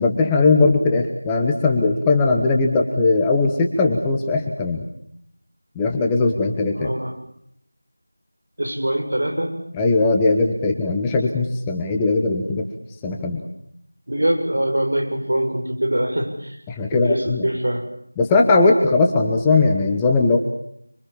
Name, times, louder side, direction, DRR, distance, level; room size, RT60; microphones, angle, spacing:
voice 1, 0.0-4.8 5.7-6.9 9.7-12.6 13.0-13.4 16.7-17.5 18.2-20.4, left 3 dB, 5° left, 1 dB, 1.2 m, -19 dB
voice 2, 6.7-7.1 8.6-9.6 14.1-16.6 16.9-17.8, right 1 dB, 65° right, 5 dB, 7.6 m, -23 dB
25.5 x 25.5 x 7.3 m, 0.70 s
figure-of-eight pair, 175°, 0 cm